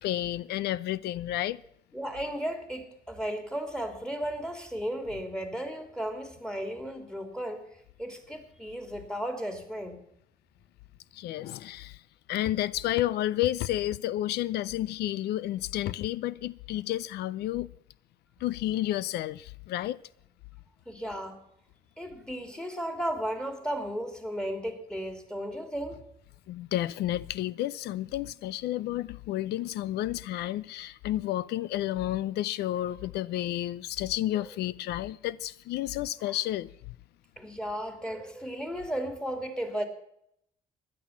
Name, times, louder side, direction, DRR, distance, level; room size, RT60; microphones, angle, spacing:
voice 1, 0.0-1.6 11.1-12.0 12.3-17.7 18.4-20.0 26.5-36.7, left 14 dB, 90° left, 0.5 m, -31 dB
voice 2, 1.9-7.6 8.0-10.0 20.9-21.4 22.0-26.0 34.3-34.5 36.3-36.4 37.4-39.9, equal, 5° left, 2.8 m, -35 dB
16.5 x 11.0 x 7.2 m
cardioid pair, 125°, 16 cm